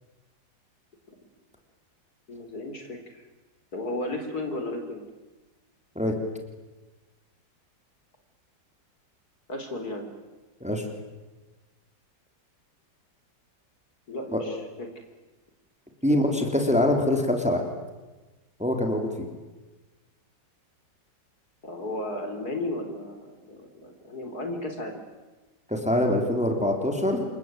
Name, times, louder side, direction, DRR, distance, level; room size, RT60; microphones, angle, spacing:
voice 1, 2.3-3.2 3.7-5.1 9.5-10.1 14.1-14.9 16.1-16.3 21.6-25.0, left 2 dB, 55° left, 5 dB, 4.2 m, -34 dB
voice 2, 16.0-17.6 18.6-19.1 25.7-27.3, left 1 dB, 5° right, 3 dB, 3.5 m, -24 dB
27.5 x 23.0 x 9.2 m, 1.2 s
omnidirectional pair, 1.9 m